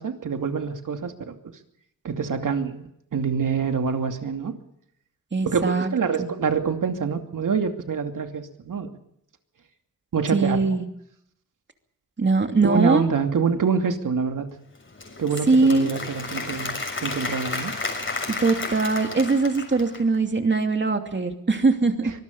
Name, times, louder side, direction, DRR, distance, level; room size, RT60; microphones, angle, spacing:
voice 1, 0.0-1.3 2.0-4.5 5.4-8.9 10.1-10.7 12.6-14.5 15.2-17.7, right 6 dB, 70° right, 5 dB, 2.7 m, -26 dB
voice 2, 5.3-5.9 6.2-6.3 10.3-10.8 12.2-13.1 15.5-15.9 18.3-22.1, right 3 dB, 35° right, 5 dB, 2.7 m, -21 dB
Applause / Crowd, 14.8-20.2, left 3 dB, 35° left, 6.7 m, -32 dB
24.5 x 20.5 x 5.5 m, 0.76 s
wide cardioid pair, 115°, 33 cm